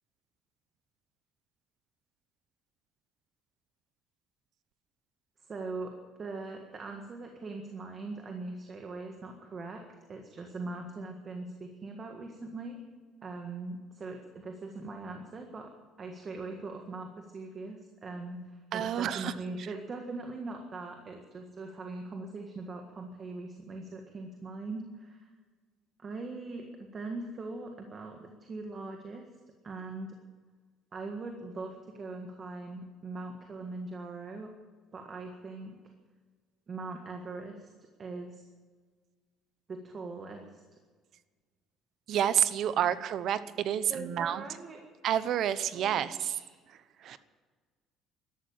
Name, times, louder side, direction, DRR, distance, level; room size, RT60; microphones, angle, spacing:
voice 1, 5.5-9.8 10.1-12.8 13.2-15.7 16.0-25.3 26.0-29.3 29.6-30.2 30.9-34.5 34.9-35.8 36.7-37.7 38.0-38.5 39.7-40.6 42.8-42.9 43.9-44.8 45.7-46.5, right 3 dB, 30° right, 3 dB, 1.7 m, -41 dB
voice 2, 18.7-19.3 42.1-44.4 45.0-46.4 47.0-47.2, right 10 dB, 55° right, 14 dB, 0.9 m, -29 dB
13.0 x 12.0 x 8.8 m, 1.5 s
cardioid pair, 135°, 0 cm